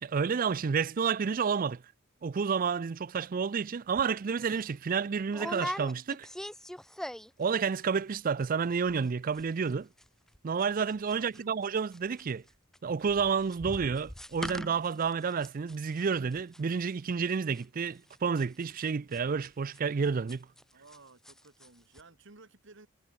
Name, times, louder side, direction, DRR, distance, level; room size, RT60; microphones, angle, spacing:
voice 1, 0.0-1.8 2.2-6.3 7.4-9.9 10.4-12.4 12.8-20.5, right 5 dB, 40° right, 0.4 m, -30 dB
sound 1, 4.0-4.1 4.5-4.7 5.3-7.5 7.7-8.2 8.4-8.5 8.7-9.1 9.3-21.0 21.2-21.7 21.9-22.0, equal, ahead, 0.7 m, -42 dB
voice 2, 11.1-11.6 20.7-22.9, right 3 dB, 60° right, 2.0 m, -55 dB
head